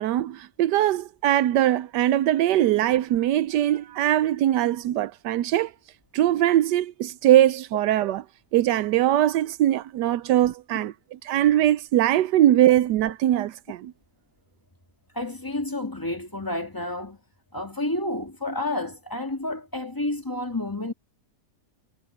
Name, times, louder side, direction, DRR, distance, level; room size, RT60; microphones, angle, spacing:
voice 1, 0.0-5.7 6.1-8.2 8.5-13.9, right 12 dB, 85° right, 1.2 m, -21 dB
voice 2, 15.1-17.2 17.5-20.9, left 2 dB, 10° left, 1.9 m, -30 dB
omnidirectional pair, 1.8 m